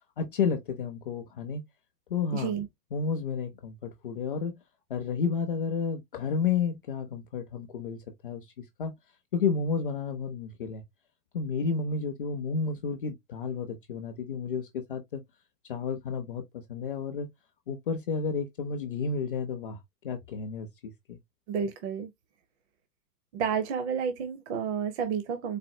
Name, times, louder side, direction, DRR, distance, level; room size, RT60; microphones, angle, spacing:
voice 1, 0.2-1.6 2.1-2.5 2.9-4.5 4.9-8.9 9.3-10.8 11.3-15.2 15.7-17.3 17.7-19.8 20.0-21.2, left 5 dB, 35° left, 0.4 m, -31 dB
voice 2, 2.3-2.7 21.5-22.1 23.3-25.6, right 7 dB, 45° right, 0.7 m, -30 dB
4.2 x 2.6 x 2.6 m
supercardioid pair, 165°, 49 cm